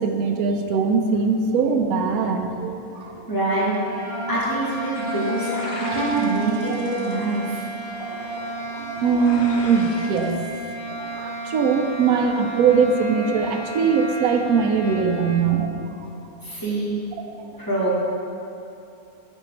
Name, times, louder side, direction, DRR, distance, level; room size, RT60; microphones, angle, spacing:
voice 1, 0.0-3.1 5.8-6.0 6.7-6.8 8.0-10.4 10.9-16.1 17.4-17.5, right 5 dB, 80° right, 4 dB, 1.0 m, -22 dB
voice 2, 3.3-3.8 4.3-7.6 16.4-17.0 17.6-18.0, right 2 dB, 15° left, -8 dB, 1.3 m, -25 dB
sound 1, 3.7-15.5, right 1 dB, 40° right, 0.5 m, -32 dB
sound 2, 4.9-10.3, left 2 dB, 75° left, 1.1 m, -39 dB
5.0 x 4.5 x 5.0 m, 2.7 s
omnidirectional pair, 1.5 m